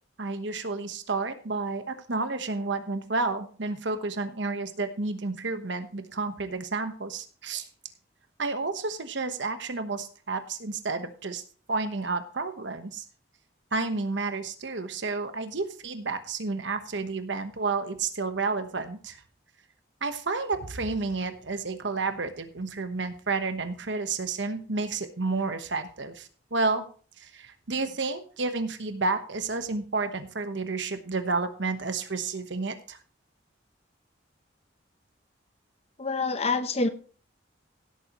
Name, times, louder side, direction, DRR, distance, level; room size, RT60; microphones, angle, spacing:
voice 1, 0.2-7.7 8.4-11.4 11.7-13.0 13.7-19.2 20.0-26.8 27.2-33.0, right 3 dB, 70° right, 8 dB, 1.1 m, -31 dB
voice 2, 36.0-36.9, left 3 dB, 35° left, 10 dB, 0.8 m, -26 dB
16.5 x 8.5 x 3.0 m, 0.40 s
head